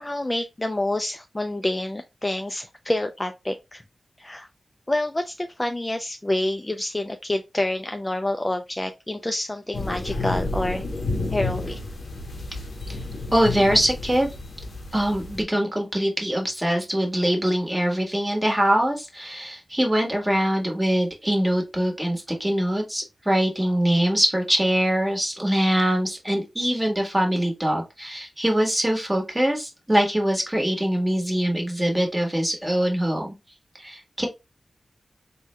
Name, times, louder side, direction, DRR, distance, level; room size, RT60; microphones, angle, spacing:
voice 1, 0.0-3.8 4.2-4.5 4.9-10.8 11.3-11.8, left 1 dB, 20° left, 0.3 m, -27 dB
sound 1, 9.7-15.4, left 2 dB, 75° left, 0.7 m, -31 dB
voice 2, 13.3-14.3 14.9-33.3 33.8-34.3, equal, 15° right, 1.3 m, -23 dB
3.4 x 2.2 x 3.0 m
cardioid pair, 60°, 0 cm